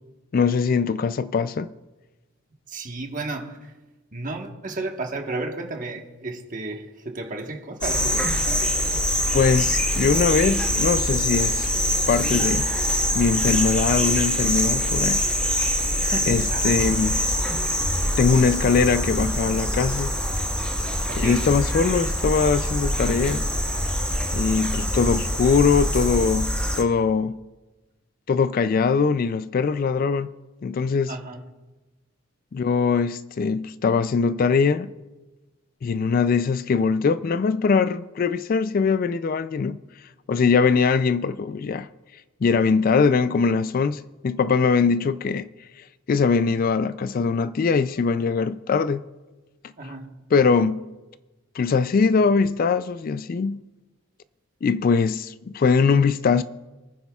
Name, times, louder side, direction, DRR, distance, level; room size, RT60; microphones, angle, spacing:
voice 1, 0.3-1.7 9.3-11.7 12.1-12.7 13.1-15.2 16.3-17.1 18.2-20.1 21.2-23.5 24.3-27.4 28.3-30.3 30.6-31.1 32.5-34.9 35.8-39.8 40.3-41.9 42.4-45.5 46.1-49.0 49.8-49.9 50.3-50.8 51.5-53.6 54.6-56.4, left 5 dB, 45° left, 0.3 m, -21 dB
voice 2, 2.7-3.8 4.1-9.1 16.0-16.8 21.1-21.5 31.1-31.4 49.8-50.1, right 2 dB, 40° right, 1.3 m, -33 dB
sound 1, 7.8-26.8, equal, 5° left, 1.4 m, -24 dB
25.0 x 9.6 x 2.4 m
head